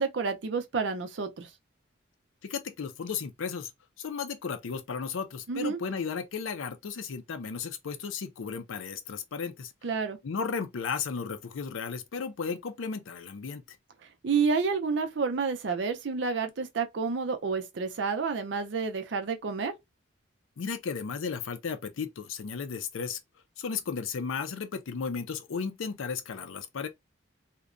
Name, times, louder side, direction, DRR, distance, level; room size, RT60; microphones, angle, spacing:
voice 1, 0.0-1.5 5.5-5.8 9.8-10.2 14.2-19.7, right 5 dB, 65° right, 0.5 m, -29 dB
voice 2, 2.4-3.7 4.0-9.7 10.2-13.6 20.6-23.2 23.6-26.9, left 5 dB, 90° left, 0.5 m, -34 dB
2.8 x 2.2 x 2.4 m
head